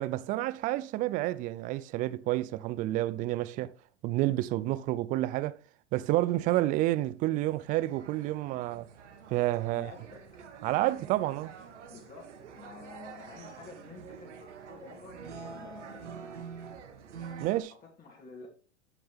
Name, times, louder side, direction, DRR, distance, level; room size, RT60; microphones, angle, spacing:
voice 1, 0.0-3.7 4.0-5.6 5.9-8.9 9.3-9.9 10.6-11.5 17.4-17.7, right 16 dB, 25° right, 0.4 m, -29 dB
sound 1, 7.3-17.6, right 6 dB, 80° right, 2.3 m, -47 dB
voice 2, 9.7-10.3 11.9-16.1 17.7-18.5, left 4 dB, 25° left, 3.1 m, -50 dB
14.0 x 5.3 x 3.5 m
hypercardioid pair, 125°, 35 cm